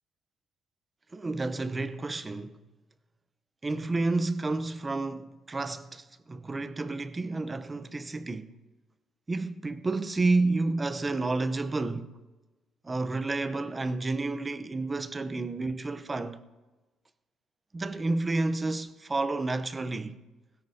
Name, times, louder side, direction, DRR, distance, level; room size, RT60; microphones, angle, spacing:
voice 1, 1.1-2.6 3.6-8.5 9.3-12.1 12.8-16.4 17.7-20.2, right 3 dB, 20° right, 0.7 m, -30 dB
17.0 x 16.0 x 2.8 m
cardioid pair, 110°, 0 cm